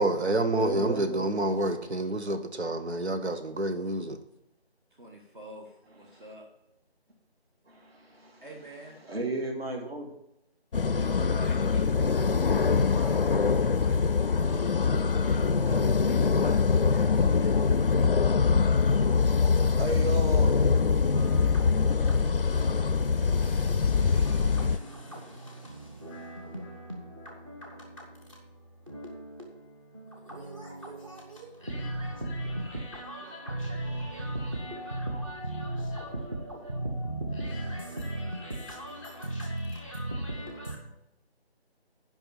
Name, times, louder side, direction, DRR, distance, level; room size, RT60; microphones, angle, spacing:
voice 1, 0.0-4.2, right 1 dB, 90° right, 1.0 m, -28 dB
voice 2, 0.5-1.3 6.1-6.2 7.7-8.4 9.0-10.1 18.9-20.5, right 2 dB, 65° right, 2.2 m, -34 dB
voice 3, 4.9-6.5 8.4-9.0 10.9-14.0 14.4-17.6 17.9-18.3, right 1 dB, 50° right, 1.4 m, -47 dB
sound 1, 10.7-24.8, left 5 dB, 55° left, 0.5 m, -24 dB
voice 4, 21.1-40.8, right 1 dB, 25° right, 0.8 m, -37 dB
8.3 x 5.3 x 7.2 m
figure-of-eight pair, 165°, 32 cm